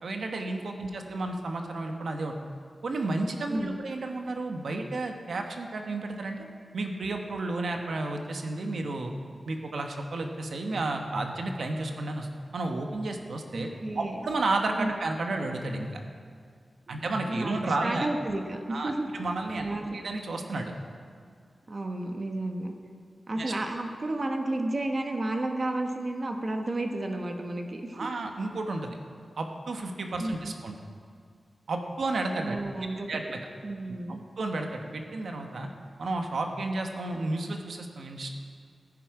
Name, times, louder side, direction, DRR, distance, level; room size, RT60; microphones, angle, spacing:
voice 1, 0.0-2.4 2.8-6.4 6.7-9.1 9.5-12.3 12.5-13.7 14.0-16.0 16.9-18.1 18.7-19.7 19.9-20.7 23.4-23.5 27.9-29.0 29.4-30.7 31.7-32.6 33.1-33.4 34.1-35.7 36.0-38.3, right 2 dB, 70° right, 4 dB, 1.1 m, -32 dB
voice 2, 0.8-1.2 3.5-3.8 13.5-14.2 14.8-14.9 16.9-17.0 17.3-19.1 19.5-20.0 21.7-22.7 23.3-28.0 30.2-30.5 32.4-33.2 33.6-34.2, right 2 dB, 35° right, 4 dB, 0.9 m, -32 dB
15.0 x 10.0 x 4.8 m, 2.1 s
wide cardioid pair, 140°, 0 cm